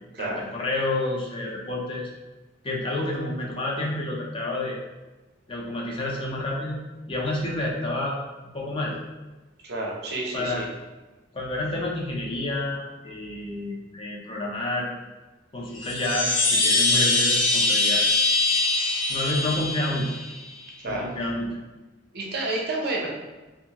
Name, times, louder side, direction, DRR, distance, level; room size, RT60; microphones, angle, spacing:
voice 1, 0.0-2.1 2.6-4.8 5.5-6.8 7.1-8.2 8.5-9.0 10.3-10.6 11.3-14.9 15.5-18.0 19.1-20.1 20.8-21.6, left 1 dB, 30° left, -2 dB, 0.5 m, -29 dB
voice 2, 9.6-10.7 20.8-21.1 22.1-23.1, right 2 dB, 60° right, -2 dB, 0.6 m, -30 dB
Chime, 15.7-20.4, left 3 dB, 90° left, 0.7 m, -23 dB
2.6 x 2.4 x 2.8 m, 1.1 s
head